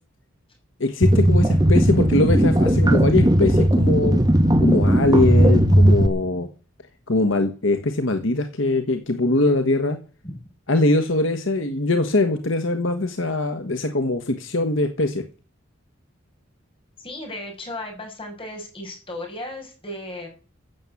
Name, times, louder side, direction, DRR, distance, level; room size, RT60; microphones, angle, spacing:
voice 1, 0.8-4.2 4.6-6.5 7.1-10.0 10.7-15.2, left 2 dB, 65° left, 7 dB, 1.4 m, -22 dB
sound 1, 1.0-6.1, equal, 20° right, 1.2 m, -16 dB
voice 2, 17.0-20.3, left 1 dB, 25° left, 2 dB, 5.6 m, -35 dB
15.0 x 7.4 x 8.4 m, 0.37 s
head